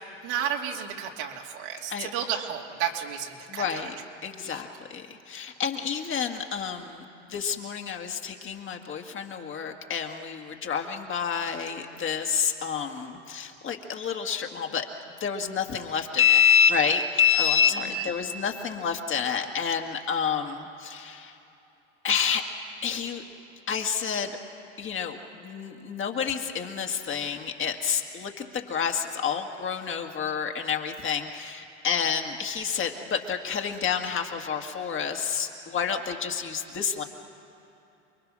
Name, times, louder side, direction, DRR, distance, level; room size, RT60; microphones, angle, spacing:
voice 1, 0.2-3.8 4.5-4.6, right 9 dB, 65° right, 1 dB, 2.7 m, -32 dB
voice 2, 3.5-4.0 4.2-21.4 22.0-22.4 22.8-23.2 23.7-24.4 24.8-37.0, left 7 dB, 35° left, 4 dB, 2.1 m, -28 dB
29.0 x 21.5 x 6.3 m, 2.8 s
hypercardioid pair, 90°, 36 cm